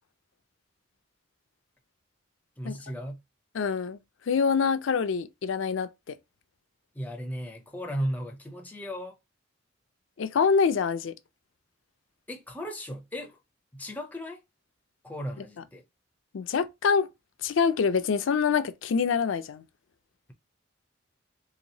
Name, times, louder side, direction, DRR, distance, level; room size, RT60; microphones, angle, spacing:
voice 1, 2.6-3.2 6.9-9.2 12.3-13.4 13.7-14.4 15.0-15.8, equal, 10° left, 0.4 m, -35 dB
voice 2, 3.5-4.0 4.3-6.2 10.2-11.1 16.3-17.1 17.4-19.6, left 5 dB, 75° left, 0.4 m, -25 dB
3.5 x 2.8 x 2.7 m
head